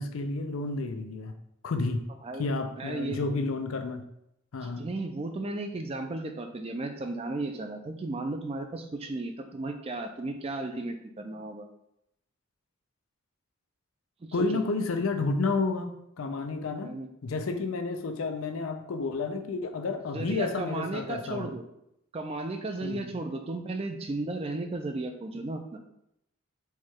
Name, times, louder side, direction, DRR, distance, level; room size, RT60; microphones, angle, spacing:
voice 1, 0.0-1.3 1.6-2.0 2.4-4.0 4.5-4.8 14.3-15.9 16.2-16.9 17.2-21.5 22.8-23.0, left 3 dB, 80° left, 6 dB, 0.5 m, -30 dB
voice 2, 2.8-3.2 4.8-11.7 14.2-14.6 16.8-17.1 20.1-21.6 22.1-25.8, right 2 dB, 30° right, 5 dB, 0.4 m, -34 dB
4.6 x 2.3 x 4.3 m, 0.79 s
head